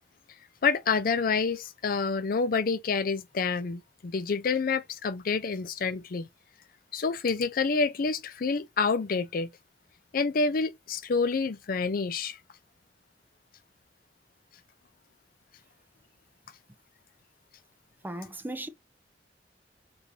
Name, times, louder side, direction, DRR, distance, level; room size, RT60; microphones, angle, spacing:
voice 1, 0.6-6.3 6.9-9.5 10.1-12.4, left 4 dB, 55° left, 0.5 m, -28 dB
voice 2, 18.0-18.7, right 1 dB, 10° right, 0.6 m, -36 dB
4.6 x 2.7 x 3.2 m
head